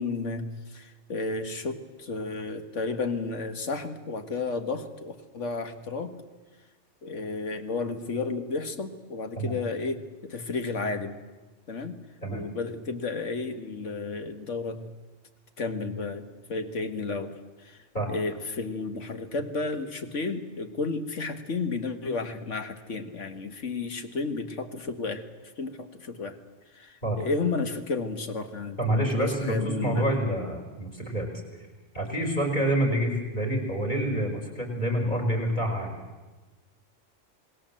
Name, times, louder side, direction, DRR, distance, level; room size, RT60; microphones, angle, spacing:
voice 1, 0.0-6.1 7.0-11.2 11.7-12.0 12.3-14.9 15.6-17.8 18.1-25.3 25.6-26.4 26.7-30.1, left 3 dB, 70° left, 8 dB, 2.0 m, -32 dB
voice 2, 28.8-31.3 31.6-31.7 31.9-36.0, right 1 dB, 40° left, 2 dB, 5.2 m, -27 dB
27.0 x 20.0 x 7.6 m, 1.2 s
omnidirectional pair, 1.3 m